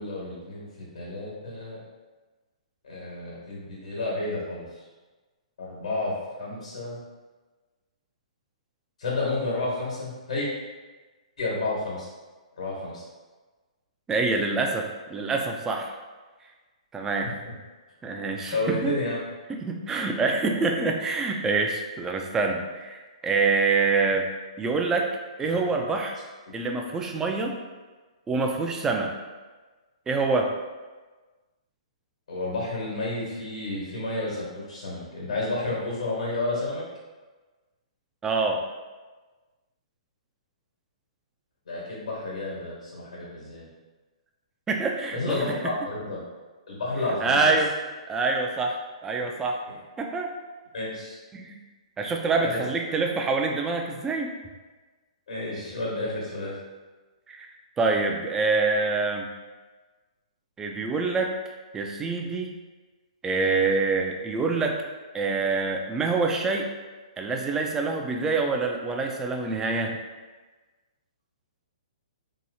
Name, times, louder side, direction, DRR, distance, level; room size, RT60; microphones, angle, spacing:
voice 1, 0.0-1.8 2.8-4.6 5.6-7.0 9.0-10.5 11.4-12.1 12.6-13.0 18.5-19.2 25.4-25.6 32.3-36.8 41.7-43.6 45.1-46.2 46.7-47.5 50.7-51.2 52.4-52.6 55.3-56.5, left 2 dB, 80° left, -5 dB, 1.3 m, -31 dB
voice 2, 14.1-15.9 16.9-17.3 18.0-18.9 19.5-24.2 24.6-25.1 25.4-26.2 26.5-27.6 28.3-29.1 30.1-30.5 38.2-38.6 44.7-45.4 47.2-47.7 48.1-48.8 49.0-49.6 50.0-50.3 51.3-51.6 52.0-54.4 57.3-57.5 57.8-59.3 60.6-61.3 61.7-62.5 63.2-64.8 65.1-66.7 67.2-70.0, right 4 dB, 15° right, 2 dB, 0.3 m, -26 dB
3.0 x 2.8 x 2.7 m, 1.3 s
hypercardioid pair, 140°, 4 cm